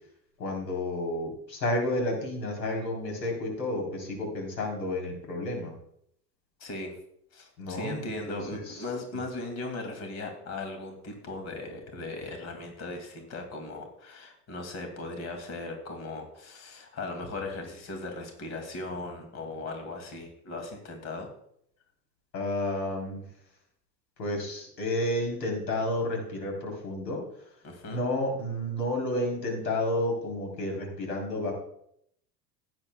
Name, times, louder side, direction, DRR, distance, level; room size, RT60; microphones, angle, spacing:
voice 1, 0.4-5.7 7.6-8.8 22.3-23.3 24.2-27.2 27.9-31.5, left 1 dB, 80° left, 1 dB, 3.6 m, -31 dB
voice 2, 6.6-7.0 7.3-21.3 27.6-28.0, left 2 dB, 30° left, 4 dB, 2.3 m, -38 dB
16.0 x 9.0 x 2.2 m, 0.71 s
hypercardioid pair, 85°, 49 cm